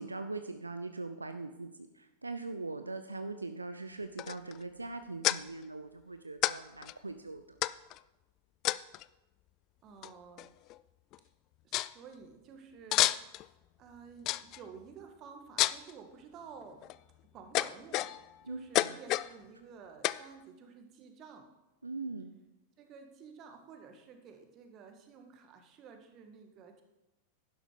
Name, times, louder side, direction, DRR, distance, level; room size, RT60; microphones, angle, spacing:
voice 1, 0.0-7.6 18.5-19.0 21.8-22.3, right 3 dB, 80° right, 9 dB, 0.6 m, -41 dB
sound 1, 4.2-4.6 5.2-5.4 6.4-6.5 6.8-6.9 7.6-8.0 8.6-9.0 10.0-10.1 10.4-10.8 11.1-11.2 11.7-11.9 12.9-13.5 14.3-14.6 15.6-15.9 16.6-17.0 17.5-18.3 18.7-19.3 20.0-20.2, left 16 dB, 40° left, 0.4 m, -30 dB
voice 2, 9.8-10.5 11.6-13.5 13.8-16.9 17.3-18.1 18.4-21.5 22.8-26.8, right 6 dB, 35° right, 5 dB, 2.0 m, -52 dB
11.5 x 11.0 x 5.1 m, 0.98 s
figure-of-eight pair, 90°, 0 cm